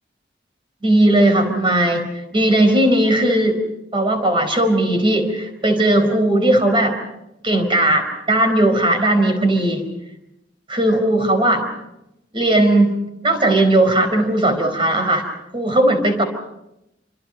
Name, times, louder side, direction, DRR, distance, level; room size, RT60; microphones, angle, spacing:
voice 1, 0.8-2.1 2.3-3.6 3.9-7.0 7.4-9.8 10.7-11.7 12.3-15.2 15.5-16.2, right 1 dB, 30° right, 6 dB, 4.4 m, -17 dB
28.0 x 25.5 x 5.3 m, 0.86 s
head